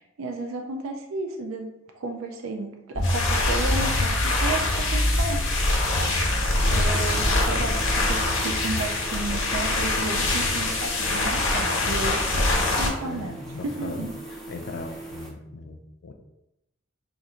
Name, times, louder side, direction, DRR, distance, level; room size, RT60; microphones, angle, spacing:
voice 1, 0.0-5.4 6.7-12.2 12.8-13.4 13.6-14.1, right 2 dB, 90° right, 3 dB, 0.4 m, -33 dB
sound 1, 3.0-12.9, left 2 dB, 85° left, 0.8 m, -25 dB
sound 2, 3.0-8.8, equal, 30° right, 1.0 m, -28 dB
voice 2, 5.9-6.2 10.6-10.7 13.0-14.1 14.5-16.1, left 3 dB, 55° left, 4 dB, 0.4 m, -38 dB
sound 3, 6.5-15.3, right 1 dB, ahead, 0.6 m, -41 dB
2.5 x 2.5 x 4.1 m, 0.88 s
head